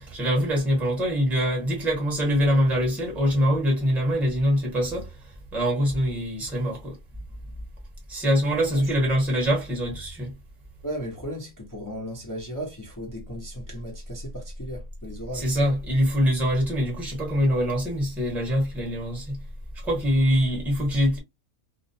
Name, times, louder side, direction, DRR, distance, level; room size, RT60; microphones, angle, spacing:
voice 1, 0.0-7.0 8.1-10.3 15.3-19.4 19.7-21.2, equal, ahead, 0.9 m, -24 dB
voice 2, 8.5-8.9 10.8-15.5, equal, 30° left, 0.3 m, -36 dB
2.5 x 2.1 x 2.6 m
omnidirectional pair, 1.5 m